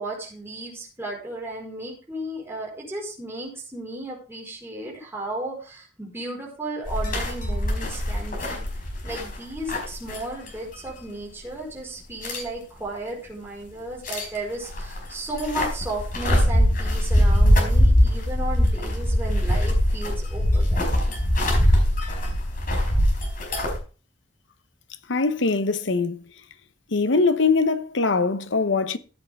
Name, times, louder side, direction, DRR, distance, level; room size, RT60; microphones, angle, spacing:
voice 1, 0.0-8.6 9.0-21.2, right 1 dB, 10° right, 4.6 m, -34 dB
sound 1, 6.9-10.5 10.8-10.9 12.2-12.4 14.0-14.4 14.7-23.8, equal, 45° left, 4.7 m, -22 dB
voice 2, 25.1-26.2 26.9-29.0, left 4 dB, 70° left, 0.9 m, -22 dB
15.0 x 8.3 x 3.5 m
head